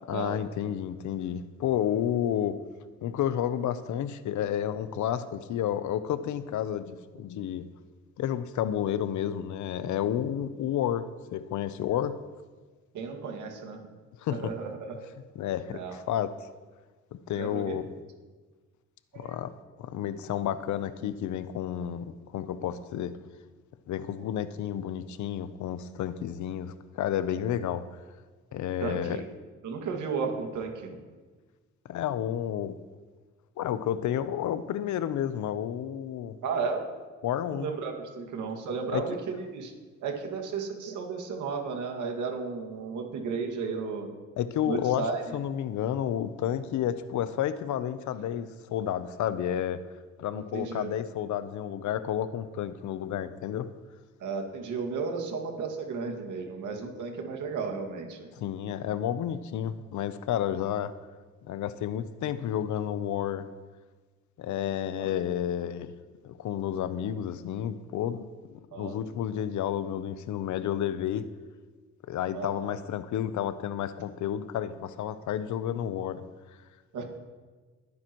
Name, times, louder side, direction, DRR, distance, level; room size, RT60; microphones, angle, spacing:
voice 1, 0.1-2.6 3.0-7.6 8.2-12.2 14.2-14.5 15.4-16.5 17.1-17.9 19.2-19.5 19.8-23.1 23.9-27.8 28.5-29.2 31.9-32.8 33.6-36.4 37.2-37.7 38.9-39.0 44.4-45.1 45.3-49.8 50.2-53.7 58.3-60.9 61.4-63.5 64.4-65.9 66.2-71.3 72.1-76.2, left 10 dB, 75° left, 13 dB, 0.8 m, -31 dB
voice 2, 12.9-13.8 14.3-15.0 15.7-16.0 17.3-17.8 19.1-19.4 28.8-29.2 29.6-30.9 36.4-36.8 37.5-39.7 40.0-44.1 44.7-45.3 50.3-50.9 54.2-58.3 65.0-65.1 68.7-69.0 72.3-72.7 76.9-77.0, right 5 dB, 80° right, 3 dB, 2.1 m, -34 dB
21.5 x 9.5 x 3.1 m, 1.4 s
cardioid pair, 90°, 30 cm